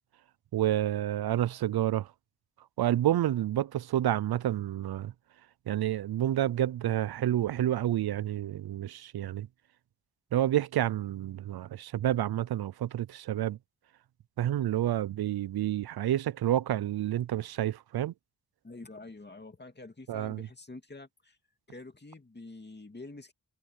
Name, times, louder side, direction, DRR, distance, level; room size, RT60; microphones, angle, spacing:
voice 1, 0.5-2.1 2.8-5.1 5.7-9.5 10.3-13.6 14.4-18.1 20.1-20.5, right 12 dB, 80° right, 0.5 m, -29 dB
voice 2, 18.6-21.4 21.7-23.3, left 2 dB, 30° left, 2.5 m, -47 dB
wide cardioid pair, 85°, 37 cm